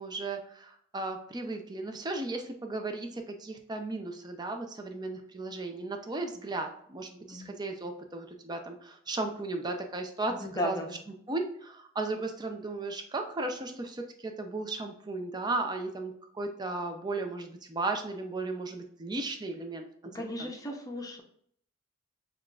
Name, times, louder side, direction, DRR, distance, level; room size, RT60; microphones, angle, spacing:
voice 1, 0.0-10.8 11.3-20.5, right 2 dB, 20° right, 4 dB, 0.5 m, -35 dB
voice 2, 10.3-10.9 20.1-21.2, left 1 dB, 15° left, 2 dB, 0.7 m, -35 dB
6.4 x 2.4 x 2.4 m, 0.64 s
head